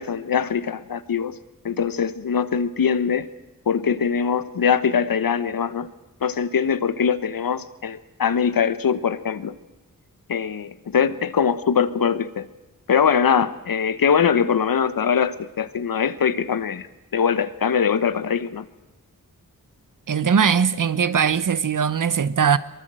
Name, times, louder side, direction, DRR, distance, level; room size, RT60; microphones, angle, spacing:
voice 1, 0.0-1.4 1.6-3.3 3.7-5.9 6.2-9.5 10.3-12.5 12.9-16.9 17.1-18.6, left 7 dB, 85° left, 1.3 m, -22 dB
voice 2, 20.1-22.6, right 7 dB, 65° right, 1.1 m, -20 dB
23.5 x 23.0 x 7.7 m
wide cardioid pair, 115°, 34 cm